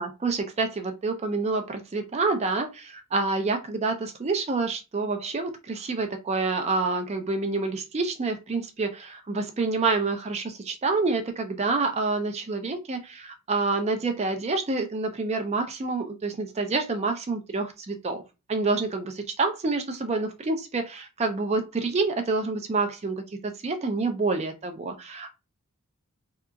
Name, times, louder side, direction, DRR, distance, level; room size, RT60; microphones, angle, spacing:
voice 1, 0.0-18.2 18.5-25.3, right 3 dB, 30° right, 5 dB, 0.4 m, -28 dB
2.8 x 2.3 x 2.3 m, 0.25 s
head